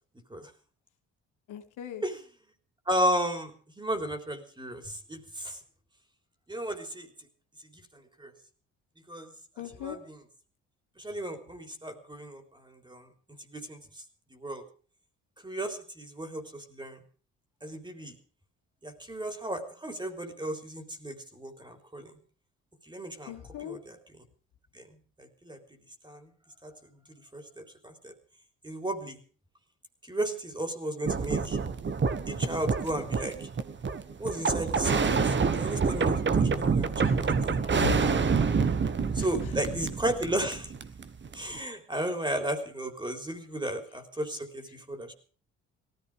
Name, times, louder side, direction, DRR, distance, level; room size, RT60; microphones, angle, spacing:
voice 1, 1.5-2.0 9.6-10.0 23.3-23.8 37.0-37.4 37.8-38.1 39.2-39.3, left 8 dB, 85° left, 5 dB, 2.3 m, -36 dB
voice 2, 2.9-3.5 3.8-5.6 6.5-7.1 7.6-8.3 9.1-10.2 11.0-13.1 13.5-13.8 14.3-14.6 15.4-17.0 17.6-18.1 18.8-22.1 22.9-23.3 23.6-24.0 24.7-24.9 25.2-25.6 26.0-26.3 26.6-26.7 27.3-28.1 28.6-29.2 30.1-31.6 32.3-33.5 34.2-37.6 39.1-40.7 41.3-45.1, right 1 dB, 15° right, 7 dB, 3.6 m, -34 dB
sound 1, 31.1-41.6, right 5 dB, 40° right, 1.4 m, -27 dB
18.0 x 14.5 x 4.9 m, 0.41 s
cardioid pair, 90°, 30 cm